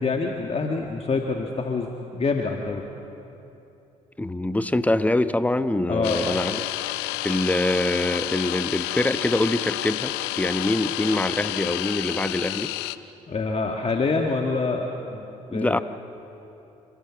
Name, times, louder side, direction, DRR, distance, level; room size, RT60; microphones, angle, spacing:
voice 1, 0.0-2.9 5.9-6.2 13.3-15.3 15.5-15.8, left 4 dB, 35° left, 2 dB, 1.8 m, -26 dB
voice 2, 4.2-6.6 7.2-12.7 15.5-15.8, left 1 dB, 10° left, 11 dB, 1.0 m, -24 dB
sound 1, 6.0-13.0, left 16 dB, 75° left, 0.6 m, -30 dB
29.0 x 14.0 x 7.5 m, 2.9 s
hypercardioid pair, 50°, 17 cm